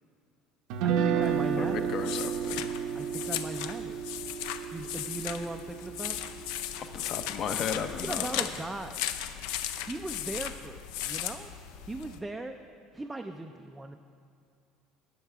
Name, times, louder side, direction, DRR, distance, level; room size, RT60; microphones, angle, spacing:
Guitar, 0.7-6.8, right 8 dB, 65° right, 0.7 m, -32 dB
voice 1, 0.8-1.9 2.9-4.0 4.7-6.2 7.7-9.0 9.8-11.5 11.9-12.6 12.9-14.0, right 2 dB, 10° right, 4 dB, 0.3 m, -38 dB
sound 1, 1.2-12.2, left 11 dB, 80° left, 0.5 m, -37 dB
voice 2, 1.6-2.7 6.8-8.5, left 7 dB, 40° left, 8 dB, 0.6 m, -35 dB
11.0 x 5.7 x 8.2 m, 2.3 s
cardioid pair, 165°, 0 cm